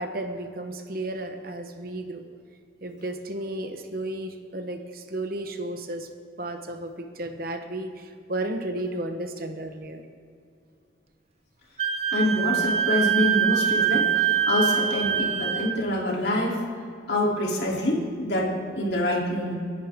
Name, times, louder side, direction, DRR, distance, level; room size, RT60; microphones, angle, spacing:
voice 1, 0.0-2.3 2.8-6.1 6.4-10.0, right 1 dB, 50° right, 6 dB, 1.1 m, -33 dB
Wind instrument woodwind instrument, 11.8-15.7, right 9 dB, 35° right, 0.6 m, -24 dB
voice 2, 12.1-16.6 17.1-19.5, left 1 dB, 60° left, -3 dB, 3.3 m, -26 dB
29.5 x 11.0 x 3.7 m, 2.3 s
head